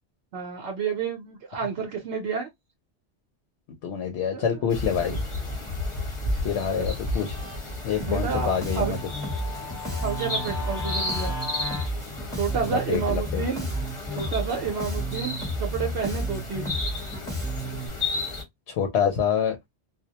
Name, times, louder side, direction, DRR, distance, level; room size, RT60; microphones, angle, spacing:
voice 1, 0.3-2.5 4.3-4.7 5.0-5.2 6.8-6.9 8.0-8.9 10.0-11.3 12.3-13.7 14.1-16.7, right 6 dB, 70° right, 0.9 m, -30 dB
voice 2, 3.8-5.2 6.4-7.4 7.8-9.0 12.7-13.4 18.7-19.6, left 7 dB, 75° left, 0.8 m, -26 dB
sound 1, 4.7-18.4, left 2 dB, 30° left, 0.9 m, -33 dB
Guitar, 6.4-11.9, left 3 dB, 20° right, 0.5 m, -40 dB
Bass guitar, 8.0-17.9, equal, 5° left, 0.8 m, -31 dB
2.2 x 2.1 x 2.7 m
omnidirectional pair, 1.1 m